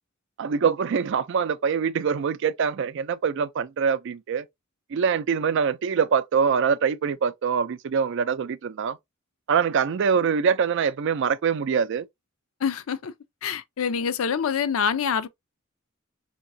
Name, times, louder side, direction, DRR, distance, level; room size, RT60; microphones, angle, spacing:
voice 1, 0.4-4.5 4.9-9.0 9.5-12.0, right 6 dB, 60° right, 0.4 m, -24 dB
voice 2, 12.6-13.1 13.4-15.3, left 7 dB, 80° left, 0.5 m, -26 dB
4.5 x 2.9 x 2.6 m
head